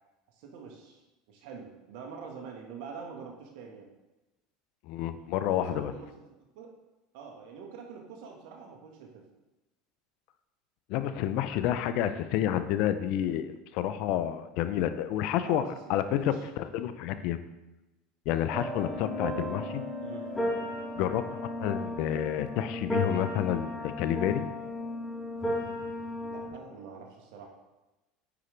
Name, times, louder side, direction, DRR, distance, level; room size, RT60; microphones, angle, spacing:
voice 1, 0.4-3.9 5.4-6.1 6.5-6.7 7.1-9.2 15.4-15.9 16.2-16.5 20.0-20.3 26.2-27.5, right 6 dB, 70° right, 1 dB, 1.4 m, -45 dB
voice 2, 4.9-5.9 10.9-15.6 15.9-17.4 18.3-19.8 20.9-24.5, left 11 dB, 65° left, 11 dB, 0.5 m, -29 dB
sound 1, 18.5-26.5, left 1 dB, 15° left, 2.5 m, -34 dB
8.5 x 5.0 x 3.3 m, 1.0 s
hypercardioid pair, 95°, 0 cm